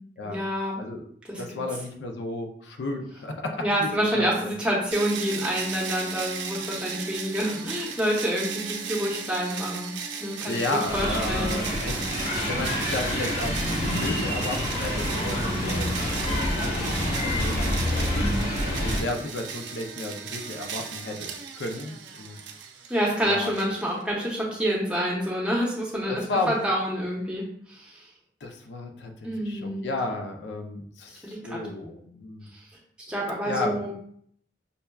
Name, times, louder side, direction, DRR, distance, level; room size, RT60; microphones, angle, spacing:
voice 1, 0.2-0.8 1.3-1.4 3.6-9.9 10.2-11.6 11.9-12.1 15.2-15.9 22.9-28.1 29.2-29.8 31.2-31.6 32.5-32.6 33.1-33.9, equal, 5° right, -4 dB, 0.8 m, -28 dB
voice 2, 1.4-3.9 4.1-4.5 10.4-12.1 12.4-18.2 18.8-22.4 23.2-23.5 26.1-26.6 28.4-32.5 33.4-33.8, left 2 dB, 75° left, 3 dB, 0.5 m, -33 dB
sound 1, 4.9-24.3, right 6 dB, 80° right, 0.5 m, -36 dB
sound 2, 10.9-19.0, left 1 dB, 40° left, 0.9 m, -27 dB
5.3 x 2.2 x 2.3 m, 0.64 s
head